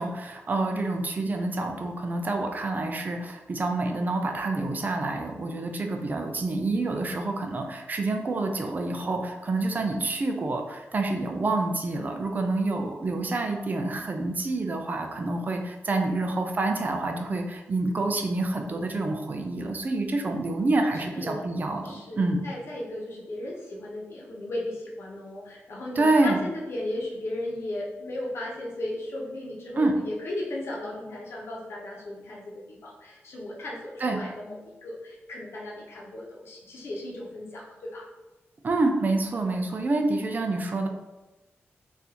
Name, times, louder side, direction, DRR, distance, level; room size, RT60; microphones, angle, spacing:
voice 1, 0.0-22.5 26.0-26.4 29.8-29.9 34.0-34.2 38.6-40.9, right 2 dB, 40° right, 4 dB, 0.4 m, -27 dB
voice 2, 20.9-21.6 21.8-38.1, left 1 dB, 65° left, -3 dB, 0.9 m, -36 dB
3.9 x 2.5 x 2.8 m, 1.1 s
wide cardioid pair, 110°, 5 cm